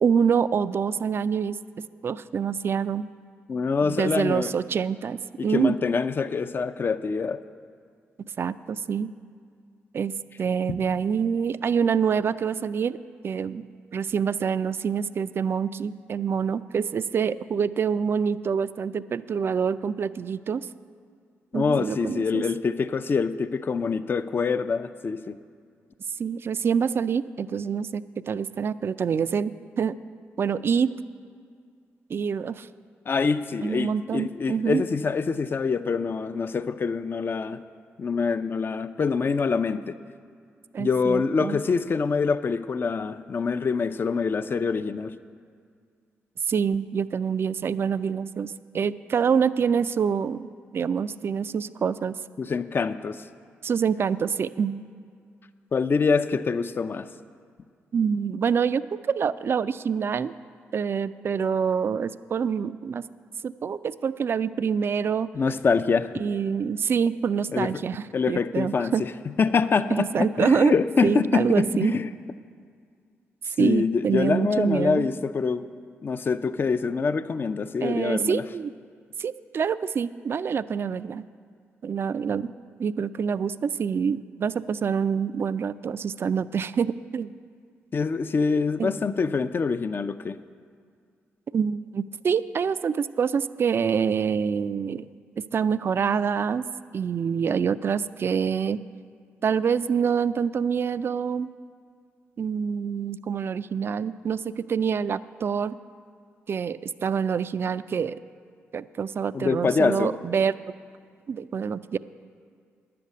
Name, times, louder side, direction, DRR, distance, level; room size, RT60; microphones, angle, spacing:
voice 1, 0.0-1.6 2.0-3.1 3.8-5.8 8.4-9.1 9.9-13.0 13.2-13.7 13.9-20.7 21.5-22.4 26.2-30.0 30.4-30.9 32.1-32.7 33.6-34.8 40.7-41.6 46.5-52.1 53.6-54.9 57.9-58.8 59.1-60.3 60.7-63.1 63.4-65.3 66.2-69.1 69.9-70.7 71.0-72.0 73.6-75.1 77.8-78.7 79.2-81.2 81.8-82.5 82.8-87.3 88.8-88.9 91.5-95.1 95.4-96.7 96.9-98.8 99.4-101.5 102.4-105.8 106.5-108.2 108.7-110.5 111.3-112.0, right 6 dB, 50° right, 15 dB, 0.4 m, -26 dB
voice 2, 3.5-4.5 5.4-7.4 21.5-25.4 33.1-37.6 38.0-40.0 40.8-45.1 52.4-53.3 55.7-57.1 65.3-66.2 67.5-67.8 68.1-69.1 69.4-72.1 73.6-75.7 76.0-78.4 87.9-90.4 109.3-110.1, left 5 dB, 45° left, 11 dB, 0.5 m, -25 dB
10.5 x 6.8 x 8.3 m, 2.1 s
supercardioid pair, 60°, 5 cm